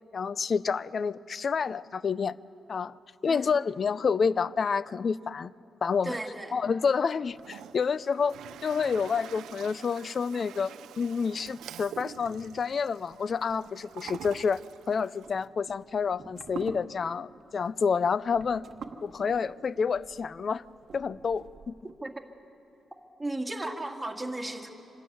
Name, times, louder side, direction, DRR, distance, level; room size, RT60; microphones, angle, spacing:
voice 1, 0.1-2.4 2.7-2.9 3.2-5.5 5.8-6.2 6.5-8.3 8.6-18.6 19.0-20.6 20.9-21.7, left 5 dB, 50° left, 19 dB, 0.4 m, -29 dB
voice 2, 6.0-6.5 22.0-22.1 23.2-24.7, right 2 dB, 15° right, 2 dB, 2.0 m, -35 dB
Toilet flush, 7.3-15.5, right 10 dB, 90° right, 0.4 m, -46 dB
sound 1, 14.9-21.9, right 5 dB, 55° right, 1.1 m, -47 dB
26.0 x 12.5 x 9.2 m, 2.7 s
cardioid pair, 85°, 0 cm